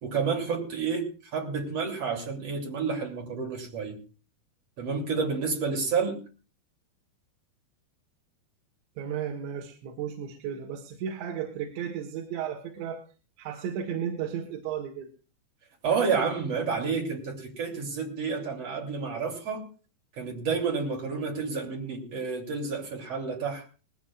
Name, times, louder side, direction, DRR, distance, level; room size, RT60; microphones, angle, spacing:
voice 1, 0.0-4.0 4.8-6.2 15.8-19.7 20.2-23.7, right 5 dB, 40° right, 1 dB, 3.6 m, -30 dB
voice 2, 9.0-13.0 13.4-15.1, right 8 dB, 80° right, 1 dB, 3.7 m, -34 dB
20.0 x 16.0 x 2.4 m, 0.36 s
omnidirectional pair, 5.1 m